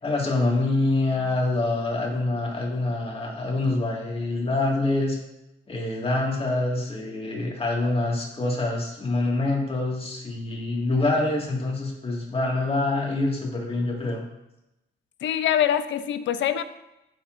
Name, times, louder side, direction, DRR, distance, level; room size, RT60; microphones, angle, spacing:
voice 1, 0.0-5.2 5.7-14.3, left 2 dB, 30° left, -1 dB, 2.0 m, -25 dB
voice 2, 15.2-16.6, left 10 dB, 70° left, 12 dB, 0.5 m, -24 dB
11.5 x 4.3 x 2.6 m, 0.91 s
cardioid pair, 90°, 20 cm